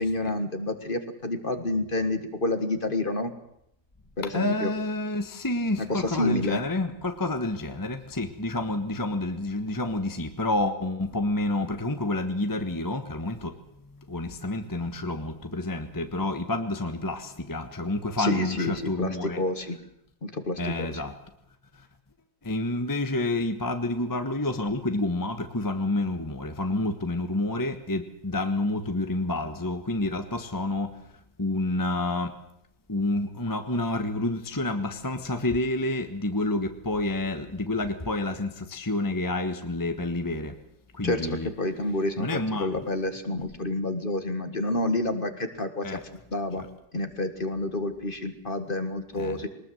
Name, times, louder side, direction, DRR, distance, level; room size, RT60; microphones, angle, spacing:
voice 1, 0.0-3.3 4.2-4.7 5.8-6.6 18.2-19.8 20.2-21.0 41.0-46.0 46.3-46.6 46.9-49.5, left 2 dB, 35° left, 8 dB, 1.9 m, -29 dB
voice 2, 4.3-13.6 14.1-19.4 20.6-21.1 22.4-30.9 31.4-32.3 32.9-40.5 40.9-41.5 42.2-42.8 45.8-46.0 46.6-46.7 49.1-49.4, left 2 dB, 15° left, 7 dB, 1.2 m, -29 dB
22.0 x 20.0 x 7.9 m, 0.75 s
omnidirectional pair, 1.7 m